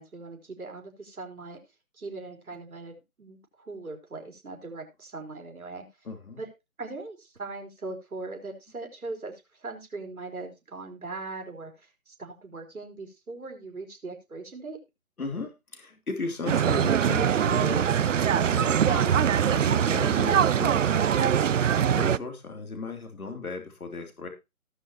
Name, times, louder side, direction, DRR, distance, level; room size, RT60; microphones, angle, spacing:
voice 1, 0.0-1.6 1.9-5.8 6.4-6.5 6.8-14.8, right 3 dB, 85° right, 2 dB, 4.2 m, -40 dB
voice 2, 6.0-6.4 15.2-24.3, left 3 dB, 85° left, 4 dB, 3.3 m, -36 dB
sound 1, 16.5-22.2, right 8 dB, 60° right, 0.6 m, -23 dB
18.5 x 6.3 x 2.9 m, 0.25 s
hypercardioid pair, 160°, 42 cm